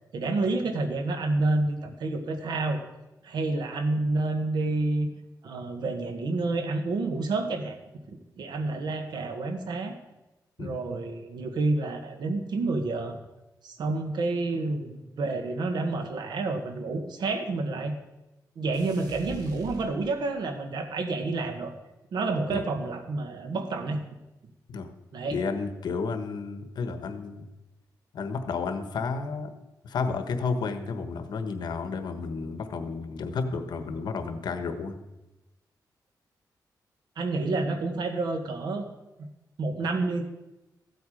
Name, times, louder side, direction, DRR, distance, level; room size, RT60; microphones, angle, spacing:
voice 1, 0.1-2.8 3.2-5.1 5.4-7.8 8.1-9.9 10.6-13.2 13.6-17.9 18.5-21.7 22.1-24.0 25.1-25.4 37.2-38.9 39.2-39.3 39.6-40.2, right 3 dB, 90° right, 6 dB, 1.4 m, -29 dB
sound 1, 18.7-20.5, right 2 dB, 70° right, 2.5 m, -43 dB
voice 2, 25.3-27.5 28.1-29.5 29.8-35.0, left 4 dB, 85° left, 8 dB, 1.2 m, -31 dB
14.5 x 8.0 x 5.0 m, 1.0 s
wide cardioid pair, 135°, 7 cm